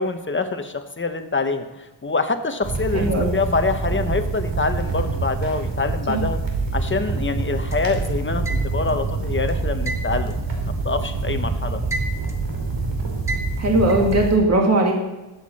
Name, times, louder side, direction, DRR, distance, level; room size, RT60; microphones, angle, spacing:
voice 1, 0.0-6.4 6.7-11.8, left 3 dB, 25° left, 7 dB, 0.9 m, -25 dB
sound 1, 2.6-14.4, right 3 dB, 70° right, 2.9 m, -26 dB
voice 2, 2.9-3.4 6.1-6.2 13.6-14.9, right 2 dB, 35° right, 0 dB, 1.9 m, -19 dB
sound 2, 7.7-9.0 9.9-11.3 11.6-12.5 13.3-14.2, right 2 dB, 5° right, 1.1 m, -32 dB
21.0 x 8.2 x 4.2 m, 1.0 s
wide cardioid pair, 175°, 45 cm